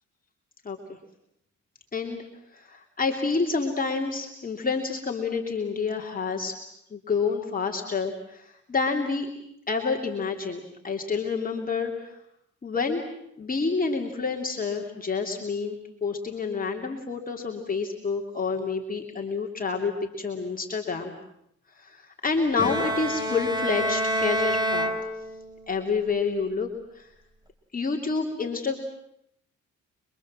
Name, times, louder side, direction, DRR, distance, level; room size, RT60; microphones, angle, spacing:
voice 1, 0.6-1.0 1.9-2.2 2.5-6.6 6.9-9.3 9.7-12.1 12.6-13.0 13.4-15.8 16.0-21.1 21.8-24.9 25.7-26.7 26.9-27.1 27.7-28.8, left 4 dB, 30° left, 0 dB, 3.2 m, -28 dB
Bowed string instrument, 22.6-25.7, equal, 15° right, 3.4 m, -27 dB
28.0 x 23.5 x 7.6 m, 0.76 s
cardioid pair, 90°, 30 cm